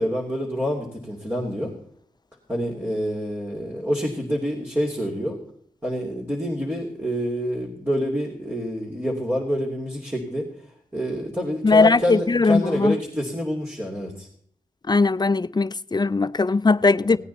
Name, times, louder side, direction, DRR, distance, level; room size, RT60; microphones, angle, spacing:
voice 1, 0.0-1.7 2.5-5.4 5.8-10.5 10.9-14.3 17.1-17.2, equal, 15° right, 3.1 m, -27 dB
voice 2, 11.6-12.9 14.9-17.2, left 3 dB, 30° left, 0.5 m, -19 dB
18.0 x 9.3 x 4.2 m
cardioid pair, 50°, 15 cm